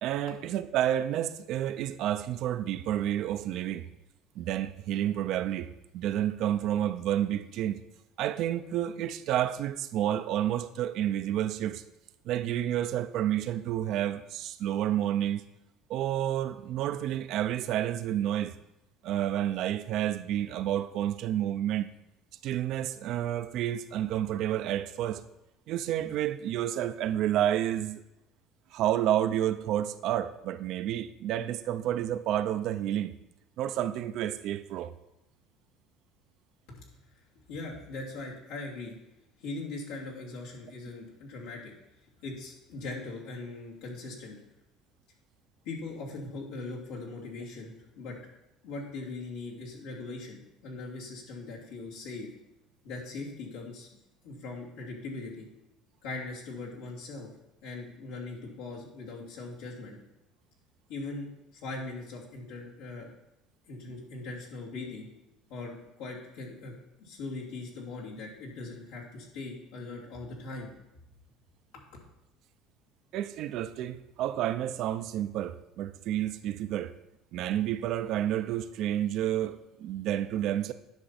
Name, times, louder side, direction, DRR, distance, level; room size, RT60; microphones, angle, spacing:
voice 1, 0.0-3.9 4.4-7.8 8.2-11.8 12.3-15.4 15.9-18.6 19.0-21.9 22.4-25.2 25.7-28.0 28.7-33.1 33.6-34.9 73.1-76.9 77.3-80.7, right 11 dB, 60° right, 0.6 m, -30 dB
voice 2, 37.5-38.9 39.4-41.7 42.2-44.4 45.6-48.2 48.6-52.3 52.8-53.9 54.2-55.5 56.0-57.3 57.6-60.0 60.9-63.1 63.7-65.1 65.5-66.7 67.0-70.7 71.7-71.8, left 3 dB, 90° left, 3.0 m, -40 dB
10.5 x 6.0 x 4.2 m
supercardioid pair, 105°, 0 cm